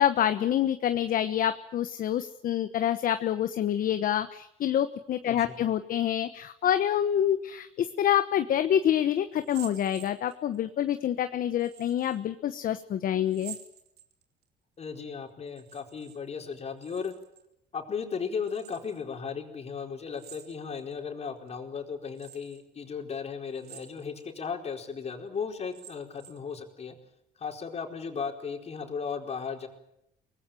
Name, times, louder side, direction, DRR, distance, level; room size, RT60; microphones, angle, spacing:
voice 1, 0.0-13.6, left 10 dB, 55° left, 10 dB, 1.1 m, -27 dB
voice 2, 5.2-5.6 14.8-17.1 17.7-27.0 27.4-29.7, left 6 dB, 40° left, 4 dB, 4.5 m, -36 dB
sound 1, 9.4-10.6 11.6-12.2 13.3-14.4 15.5-16.2 16.5-17.5 18.4-19.0 20.2-20.9 21.5-21.6 22.2-22.6 23.5-24.3 24.7-24.8 25.5-26.5, right 10 dB, 70° right, 3.3 m, -49 dB
24.0 x 19.5 x 9.1 m, 0.79 s
cardioid pair, 110°, 17 cm